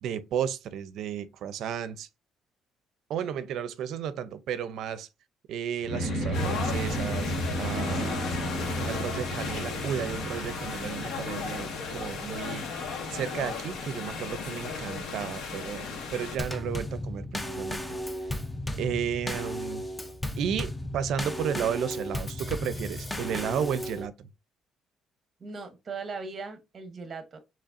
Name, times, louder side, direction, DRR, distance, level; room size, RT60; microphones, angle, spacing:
voice 1, 0.0-2.1 3.1-5.1 5.5-8.4 8.9-12.7 13.1-17.8 18.8-19.8 20.4-24.1, right 8 dB, 60° right, 0.5 m, -33 dB
sound 1, 5.8-12.4, equal, 45° left, 1.3 m, -33 dB
sound 2, 6.3-16.4, left 4 dB, 75° left, 1.3 m, -35 dB
Drum kit / Snare drum / Bass drum, 16.4-24.1, left 1 dB, 10° left, 0.4 m, -34 dB
voice 2, 25.4-27.4, right 4 dB, 25° right, 0.9 m, -39 dB
6.7 x 3.1 x 2.5 m
cardioid pair, 175°, 0 cm